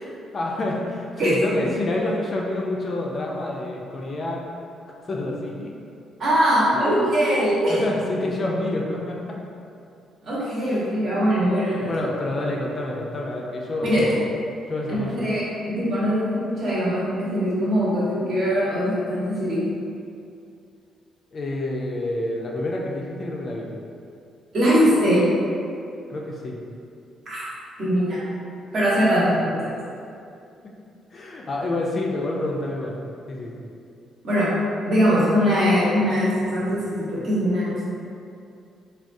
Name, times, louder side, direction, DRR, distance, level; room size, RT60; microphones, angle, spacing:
voice 1, 0.0-4.5 5.1-5.8 6.7-6.9 7.7-9.4 10.6-10.8 11.8-14.3 14.7-15.3 21.3-23.7 26.1-26.6 29.1-29.3 30.6-30.7 31.1-33.0 33.3-33.6, left 2 dB, 35° left, -2 dB, 0.3 m, -28 dB
voice 2, 6.2-7.8 10.2-11.9 13.8-14.0 15.1-19.6 24.5-25.2 27.3-27.5 27.8-28.2 28.7-29.4 29.6-29.7 34.2-34.5 34.9-37.8, equal, 50° right, -8 dB, 1.0 m, -21 dB
3.5 x 2.2 x 2.5 m, 2.5 s
cardioid pair, 145°, 0 cm